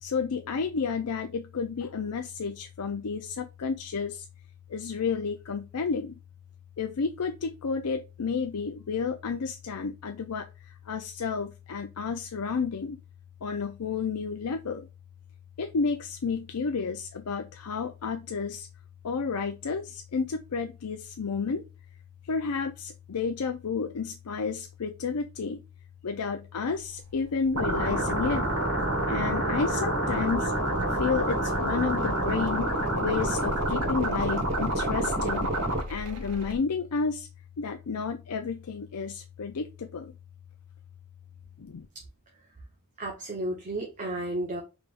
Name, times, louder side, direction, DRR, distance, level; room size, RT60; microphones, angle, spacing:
voice 1, 0.0-4.3 4.7-6.1 6.8-13.0 13.4-14.9 15.6-18.7 19.0-21.6 22.3-25.6 26.0-28.5 29.1-30.5 30.9-35.5 35.9-37.3 37.6-40.1 41.6-41.9, left 5 dB, 85° left, 0.5 m, -31 dB
sound 1, 26.8-36.6, equal, 90° right, 0.9 m, -43 dB
sound 2, 27.5-35.8, right 1 dB, 70° right, 2.0 m, -27 dB
voice 2, 43.0-44.6, right 1 dB, 35° right, 1.1 m, -32 dB
4.8 x 3.5 x 2.5 m
head